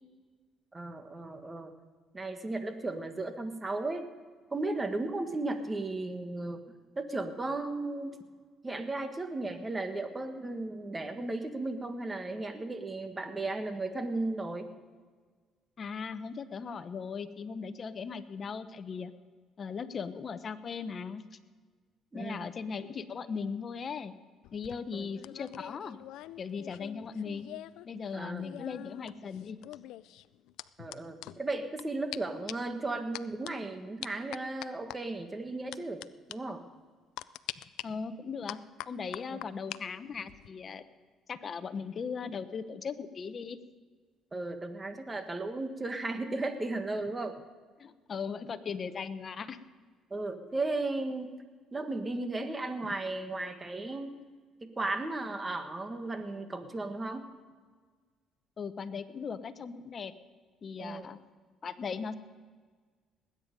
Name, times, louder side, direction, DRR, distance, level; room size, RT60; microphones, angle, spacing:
voice 1, 0.7-1.7 2.1-4.0 4.5-6.6 6.9-8.2 8.6-14.7 22.1-22.4 24.9-25.1 28.1-28.7 30.8-36.6 39.3-39.4 44.3-47.4 50.1-51.4 51.7-54.2 54.6-57.3 60.8-61.1, right 2 dB, 25° right, 7 dB, 1.6 m, -35 dB
voice 2, 15.8-19.1 19.6-21.2 22.1-24.1 24.5-26.0 26.4-27.5 27.8-29.6 37.8-38.6 38.9-40.8 41.3-43.6 47.8-49.6 58.6-60.1 60.6-61.2 61.6-62.2, left 5 dB, 45° left, 11 dB, 0.9 m, -38 dB
sound 1, 24.4-27.9 28.1-31.8 32.1-32.2 32.5-32.7 33.1-33.5 34.0-35.0 35.7-36.1 36.3-36.4 37.2-37.8 38.5-39.8 40.1-40.5, left 15 dB, 80° left, 0.4 m, -44 dB
20.0 x 9.1 x 5.3 m, 1.5 s
supercardioid pair, 85°, 0 cm